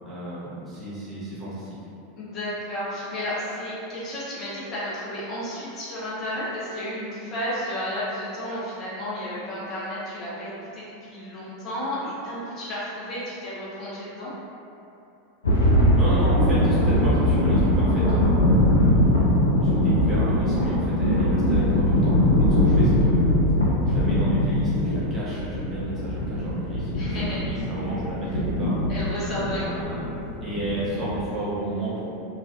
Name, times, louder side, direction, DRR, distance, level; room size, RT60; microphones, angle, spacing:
voice 1, 0.0-1.7 15.9-18.3 18.8-19.3 19.5-23.3 23.8-28.8 29.5-30.0 30.4-32.1, right 1 dB, 25° right, -10 dB, 1.0 m, -32 dB
voice 2, 2.2-14.3 26.9-27.5 28.9-29.8, equal, 40° left, -9 dB, 0.9 m, -32 dB
sound 1, 15.4-31.2, left 1 dB, 80° left, 0.4 m, -21 dB
2.5 x 2.5 x 2.2 m, 2.8 s
figure-of-eight pair, 85°, 0 cm